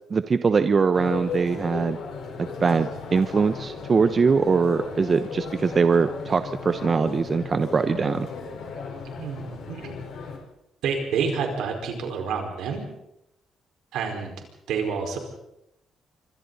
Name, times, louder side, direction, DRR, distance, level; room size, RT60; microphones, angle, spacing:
voice 1, 0.1-2.0 2.6-8.3, right 5 dB, 40° right, 10 dB, 0.9 m, -22 dB
sound 1, 0.9-10.4, left 5 dB, 70° left, 4.7 m, -36 dB
voice 2, 9.0-10.0 10.8-12.8 13.9-14.3 14.7-15.2, right 6 dB, 85° right, 2 dB, 4.9 m, -28 dB
26.5 x 24.5 x 4.1 m, 0.85 s
cardioid pair, 90°, 0 cm